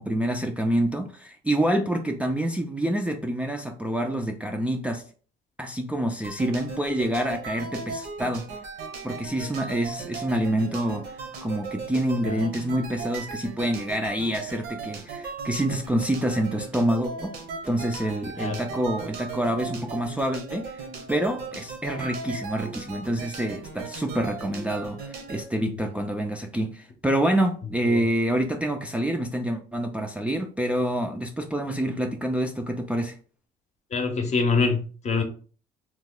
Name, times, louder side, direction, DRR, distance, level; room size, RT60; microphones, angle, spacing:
voice 1, 0.0-5.0 5.6-8.4 9.0-11.1 11.4-17.3 17.7-20.8 21.1-33.2, right 1 dB, 10° right, 0.3 m, -27 dB
sound 1, 6.2-25.4, right 4 dB, 70° right, 0.8 m, -37 dB
voice 2, 33.9-35.2, left 4 dB, 45° left, 0.7 m, -25 dB
2.9 x 2.3 x 3.6 m
cardioid pair, 110°, 17 cm